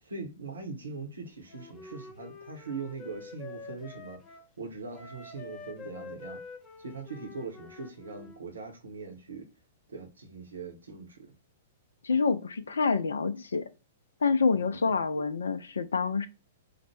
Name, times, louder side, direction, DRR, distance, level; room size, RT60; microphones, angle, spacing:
voice 1, 0.0-4.2 4.6-6.4 6.8-9.5 9.9-11.3 14.5-14.9, right 4 dB, 75° right, 0.9 m, -41 dB
Wind instrument woodwind instrument, 1.5-4.5 4.9-8.4, left 4 dB, 20° left, 0.6 m, -47 dB
voice 2, 12.0-13.7 14.2-16.3, left 4 dB, 70° left, 0.3 m, -27 dB
4.9 x 2.1 x 3.2 m
figure-of-eight pair, 105°, 0 cm